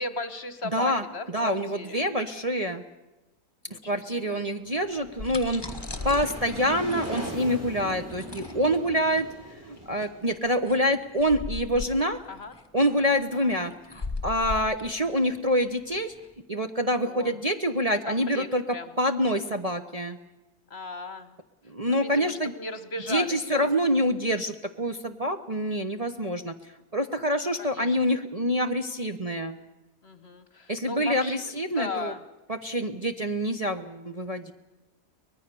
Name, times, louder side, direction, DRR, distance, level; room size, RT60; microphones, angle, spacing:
voice 1, 0.0-2.0 3.7-4.4 12.3-12.5 13.3-13.5 17.0-17.3 18.1-18.9 20.7-21.4 21.8-23.7 27.6-28.0 30.0-32.2, left 3 dB, 45° left, 11 dB, 1.6 m, -37 dB
voice 2, 0.7-1.0 1.3-2.8 3.7-5.6 6.0-9.3 9.7-12.2 12.7-13.7 14.2-16.1 16.5-18.6 19.0-20.2 21.7-22.5 23.1-26.5 26.9-29.6 30.7-32.1 32.5-34.5, equal, 30° right, 4 dB, 1.0 m, -26 dB
sound 1, 4.6-11.3, equal, 10° right, 5.8 m, -40 dB
sound 2, 4.9-16.3, left 3 dB, 15° left, 1.5 m, -39 dB
24.5 x 20.0 x 6.9 m, 1.0 s
omnidirectional pair, 1.6 m